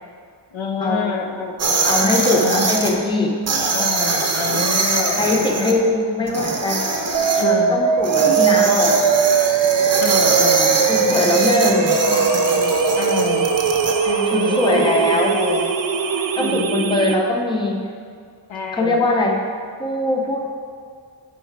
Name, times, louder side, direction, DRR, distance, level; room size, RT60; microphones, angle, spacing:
voice 1, 0.5-1.8 2.3-2.7 3.7-5.8 7.4-7.8 10.0-11.6 12.0-13.5 14.1-15.7 16.4-17.2 18.5-19.1, left 5 dB, 90° left, 4 dB, 0.9 m, -28 dB
sound 1, 1.6-2.9 3.5-5.7 6.3-7.4 8.0-13.9, right 3 dB, 35° right, 0.8 m, -22 dB
voice 2, 1.9-3.4 5.2-6.8 7.3-9.0 10.9-12.0 14.3-15.4 16.4-17.8 18.7-19.4 19.8-20.4, left 2 dB, 10° left, 1 dB, 0.6 m, -21 dB
sound 2, 7.1-17.1, right 7 dB, 75° right, 0.6 m, -20 dB
Breathing, 11.7-16.6, left 3 dB, 55° left, 1.1 m, -28 dB
10.0 x 4.5 x 4.7 m, 2.2 s
wide cardioid pair, 175°, 45 cm